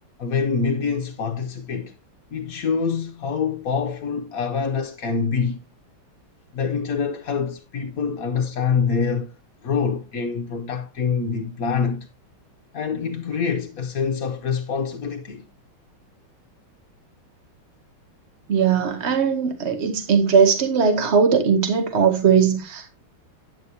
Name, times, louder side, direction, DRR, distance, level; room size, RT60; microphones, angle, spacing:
voice 1, 0.2-1.9 2.3-5.6 6.5-9.3 9.6-12.1 12.7-15.5, left 5 dB, 60° left, 1.0 m, -25 dB
voice 2, 18.5-22.9, right 6 dB, 45° right, 0.9 m, -19 dB
10.5 x 8.2 x 2.8 m
omnidirectional pair, 2.3 m